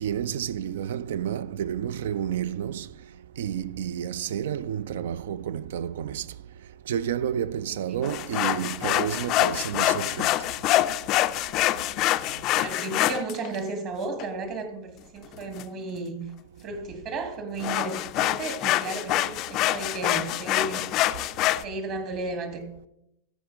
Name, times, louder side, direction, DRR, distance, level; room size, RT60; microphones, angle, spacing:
voice 1, 0.0-2.9 3.4-6.2 6.9-10.4, right 9 dB, 60° right, 0.4 m, -30 dB
sound 1, 8.0-13.6 14.2-14.3 15.3-15.6 17.6-21.6, left 15 dB, 40° left, 0.4 m, -25 dB
voice 2, 11.7-12.0 12.3-16.3 16.6-20.9 21.6-22.7, right 3 dB, 40° right, 1.8 m, -34 dB
14.5 x 5.0 x 5.2 m
figure-of-eight pair, 90°, 0 cm